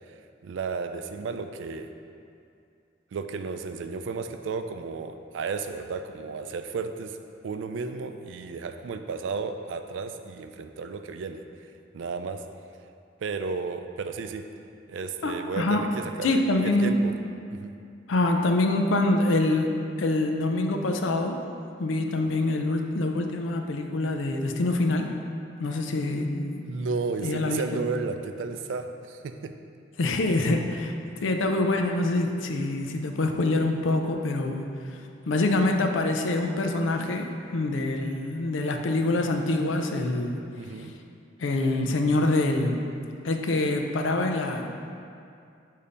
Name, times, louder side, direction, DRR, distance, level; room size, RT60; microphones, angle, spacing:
voice 1, 0.4-1.9 3.1-7.2 7.4-11.4 11.9-12.4 13.2-14.4 14.9-16.3 16.6-17.1 17.5-17.7 26.6-29.5 40.6-41.0, right 4 dB, 75° right, 8 dB, 0.3 m, -33 dB
voice 2, 15.2-15.8 16.2-16.9 18.1-19.7 20.0-21.4 21.8-25.1 25.6-26.6 27.2-27.6 30.0-30.9 31.2-34.6 35.3-40.4 41.4-42.8 43.2-44.7, left 2 dB, 80° left, 4 dB, 0.5 m, -25 dB
6.8 x 2.8 x 5.1 m, 2.5 s
head